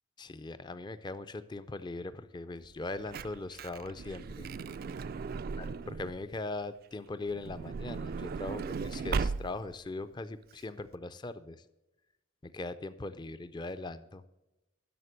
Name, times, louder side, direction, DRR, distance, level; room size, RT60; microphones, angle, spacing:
voice 1, 0.2-4.5 5.6-11.6 12.4-14.2, left 2 dB, 20° left, 13 dB, 0.4 m, -40 dB
Truck / Door, 2.7-6.2 7.3-9.8 10.5-10.6 10.8-10.9, right 4 dB, 50° right, 0.3 m, -37 dB
11.0 x 6.5 x 6.5 m, 1.0 s
head